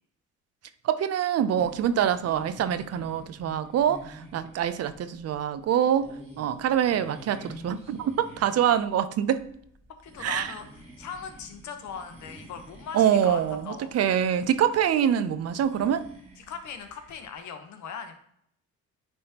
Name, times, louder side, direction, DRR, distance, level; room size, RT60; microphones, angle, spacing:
voice 1, 0.8-6.1 6.4-9.4 10.2-10.5 12.9-16.1, right 9 dB, 55° right, 12 dB, 0.5 m, -25 dB
sound 1, 1.5-17.3, equal, 20° right, 1.7 m, -49 dB
voice 2, 10.0-13.9 16.4-18.1, left 6 dB, 70° left, 7 dB, 1.0 m, -40 dB
9.5 x 3.5 x 2.9 m, 0.68 s
cardioid pair, 90°, 30 cm